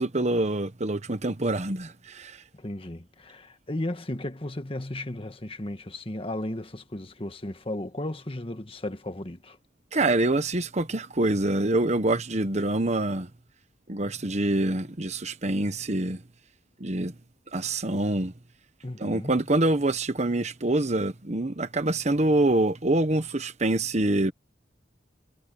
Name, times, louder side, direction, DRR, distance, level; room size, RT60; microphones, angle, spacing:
voice 1, 0.0-2.4 9.9-13.3 13.9-16.2 16.8-17.1 17.5-18.3 19.0-24.3, right 2 dB, 40° right, 1.2 m, -25 dB
voice 2, 2.5-9.6 18.8-19.3, left 1 dB, 30° left, 1.5 m, -35 dB
head